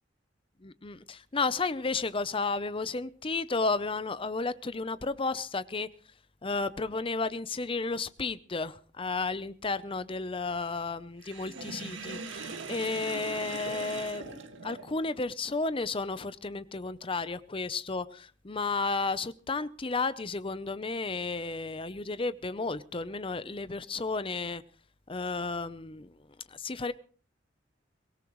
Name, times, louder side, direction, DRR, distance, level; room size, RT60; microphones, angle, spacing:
voice 1, 0.6-5.9 6.4-24.6 25.1-26.1 26.5-26.9, left 3 dB, 30° left, 0.7 m, -33 dB
Sink (filling or washing), 11.2-15.2, right 4 dB, 75° right, 1.9 m, -40 dB
23.0 x 18.0 x 3.1 m
head